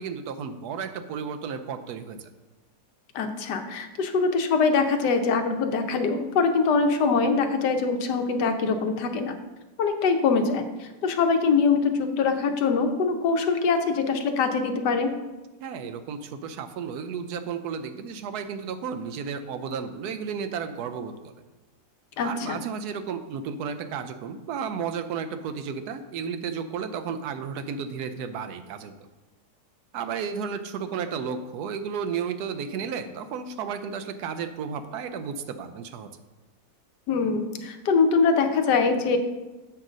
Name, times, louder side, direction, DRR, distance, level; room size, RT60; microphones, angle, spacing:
voice 1, 0.0-2.3 15.6-21.3 22.2-28.9 29.9-36.1, right 6 dB, 75° right, 8 dB, 1.1 m, -33 dB
voice 2, 3.1-9.4 9.8-15.1 22.2-22.6 37.1-39.2, left 4 dB, 85° left, 7 dB, 1.3 m, -23 dB
7.3 x 3.8 x 6.1 m, 1.1 s
omnidirectional pair, 1.7 m